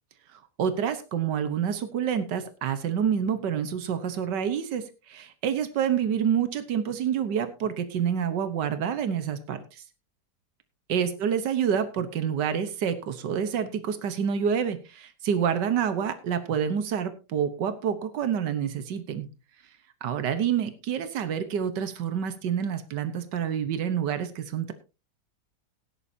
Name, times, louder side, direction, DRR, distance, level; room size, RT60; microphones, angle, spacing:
voice 1, 0.3-9.8 10.9-19.3 20.0-24.7, right 8 dB, 85° right, 10 dB, 1.7 m, -28 dB
17.5 x 10.5 x 2.8 m, 0.31 s
omnidirectional pair, 1.8 m